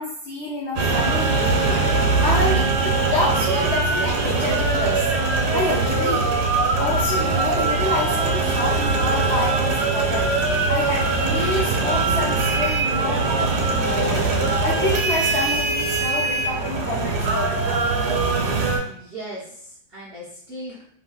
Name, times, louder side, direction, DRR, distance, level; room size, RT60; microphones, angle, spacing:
voice 1, 0.0-1.8 2.2-5.0 5.5-6.3 6.8-10.3 10.7-14.3 14.6-17.8, left 2 dB, 80° left, -4 dB, 0.6 m, -28 dB
sound 1, 0.8-18.8, right 3 dB, 90° right, 1.2 m, -21 dB
voice 2, 18.9-20.8, right 1 dB, 60° right, -8 dB, 0.6 m, -37 dB
3.0 x 2.6 x 2.2 m, 0.64 s
omnidirectional pair, 1.8 m